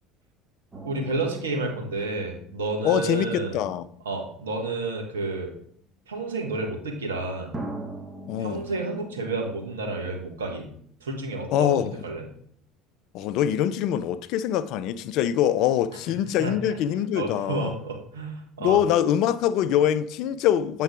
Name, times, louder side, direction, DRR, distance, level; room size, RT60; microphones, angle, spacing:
sound 1, 0.7-4.6 5.5-5.6 7.5-10.9 11.1-11.2, right 2 dB, 25° right, 1.4 m, -42 dB
voice 1, 0.8-3.6 4.0-5.5 6.1-7.6 8.4-10.7 11.0-11.8 12.0-12.3 16.4-16.5 17.1-18.8, right 3 dB, 80° right, 1.4 m, -30 dB
voice 2, 2.8-3.9 8.3-8.6 11.5-12.0 13.1-17.7 18.6-20.8, left 10 dB, 55° left, 0.4 m, -24 dB
8.2 x 3.8 x 4.8 m
figure-of-eight pair, 65°, 0 cm